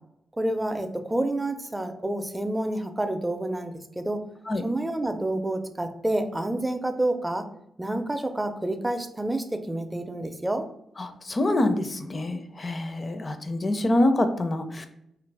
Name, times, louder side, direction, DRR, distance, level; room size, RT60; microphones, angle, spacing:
voice 1, 0.4-4.2 4.6-7.5 7.8-10.7, right 1 dB, 15° right, 7 dB, 0.5 m, -28 dB
voice 2, 11.0-14.9, left 1 dB, 40° left, 8 dB, 0.4 m, -26 dB
2.8 x 2.5 x 3.3 m, 0.78 s
hypercardioid pair, 40°, 0 cm